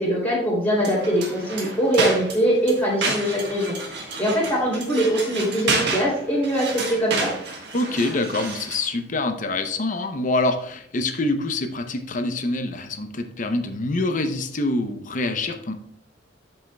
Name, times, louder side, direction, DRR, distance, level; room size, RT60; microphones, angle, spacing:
voice 1, 0.0-7.3, equal, 10° left, -6 dB, 2.9 m, -22 dB
sound 1, 0.8-8.9, right 3 dB, 65° right, 1.5 m, -30 dB
voice 2, 7.7-15.7, left 2 dB, 45° left, 7 dB, 0.7 m, -25 dB
11.5 x 5.4 x 2.3 m, 0.67 s
head